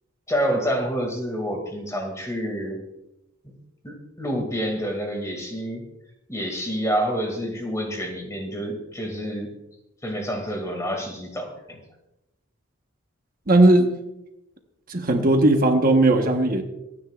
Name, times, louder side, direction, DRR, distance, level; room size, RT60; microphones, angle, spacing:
voice 1, 0.3-2.8 3.8-5.8 6.3-9.5 10.0-11.8, equal, 15° left, 3 dB, 2.2 m, -28 dB
voice 2, 13.5-13.9 14.9-16.6, right 2 dB, 45° right, 4 dB, 1.2 m, -17 dB
26.5 x 9.9 x 2.4 m, 0.91 s
head